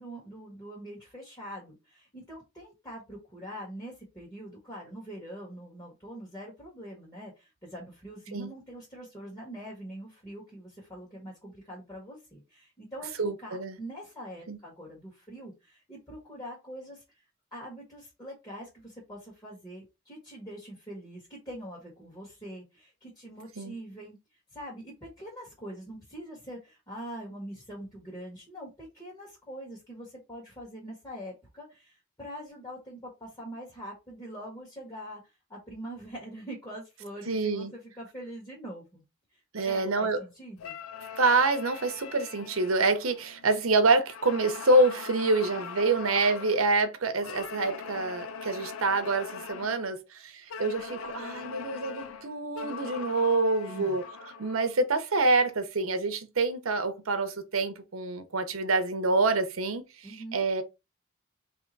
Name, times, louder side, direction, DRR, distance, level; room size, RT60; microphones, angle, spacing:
voice 1, 0.0-17.0 17.5-24.2 24.5-35.2 35.5-39.0 39.3-40.8 53.7-54.0 60.0-60.5, equal, 20° left, 1.4 m, -43 dB
voice 2, 13.2-13.8 14.5-14.6 23.6-23.7 37.3-37.7 39.5-40.2 41.2-54.0 54.4-59.8 60.3-60.6, right 3 dB, 80° right, 0.8 m, -26 dB
sound 1, 40.6-43.7 44.1-46.7 47.2-49.9 50.5-54.7, left 6 dB, 85° left, 0.4 m, -41 dB
3.5 x 2.9 x 4.0 m
head